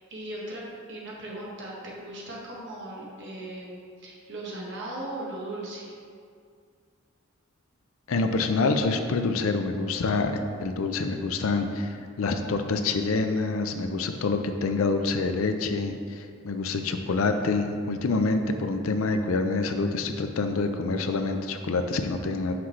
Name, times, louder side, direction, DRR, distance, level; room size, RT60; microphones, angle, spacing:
voice 1, 0.1-5.9, right 1 dB, 60° right, -4 dB, 1.4 m, -38 dB
voice 2, 8.1-22.5, left 3 dB, 85° left, 7 dB, 0.5 m, -27 dB
6.0 x 5.9 x 3.1 m, 2.1 s
head